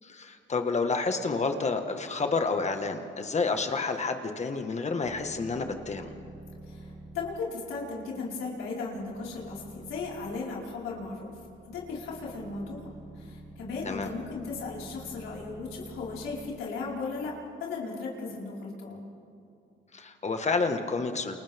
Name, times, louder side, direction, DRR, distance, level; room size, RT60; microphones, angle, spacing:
voice 1, 0.0-6.1 13.8-14.1 19.9-21.4, left 4 dB, 35° left, 6 dB, 1.7 m, -29 dB
sound 1, 5.0-17.5, right 2 dB, 15° right, 2.5 m, -49 dB
voice 2, 6.7-11.3 11.7-12.8 13.1-17.3 17.6-19.0, left 4 dB, 85° left, -5 dB, 5.1 m, -36 dB
29.0 x 29.0 x 3.7 m, 2.6 s
cardioid pair, 90°, 20 cm